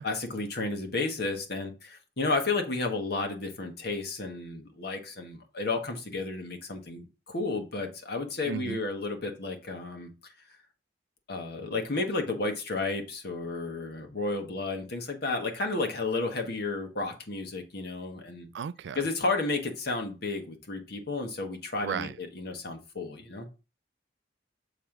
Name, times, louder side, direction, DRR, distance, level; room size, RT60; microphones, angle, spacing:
voice 1, 0.0-10.1 11.3-18.5 18.9-23.5, left 3 dB, 60° left, 1.5 m, -32 dB
voice 2, 8.4-8.8 18.5-19.1 21.8-22.2, right 7 dB, 65° right, 0.3 m, -34 dB
7.2 x 3.3 x 6.0 m
head